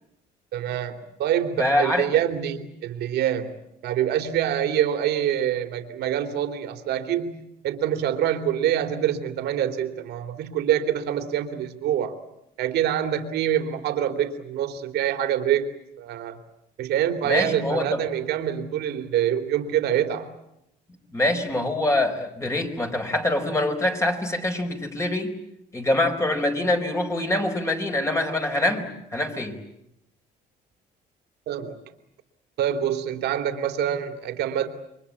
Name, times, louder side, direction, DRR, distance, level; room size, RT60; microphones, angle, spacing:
voice 1, 0.5-3.5 3.8-12.2 12.6-15.7 16.0-16.4 16.8-20.3 31.5-31.8 32.6-34.7, right 10 dB, 75° right, 7 dB, 2.9 m, -25 dB
voice 2, 1.6-2.1 17.2-18.0 21.1-25.3 25.7-29.6, left 1 dB, 15° left, 4 dB, 4.5 m, -24 dB
28.5 x 23.5 x 8.5 m, 0.83 s
cardioid pair, 110°, 17 cm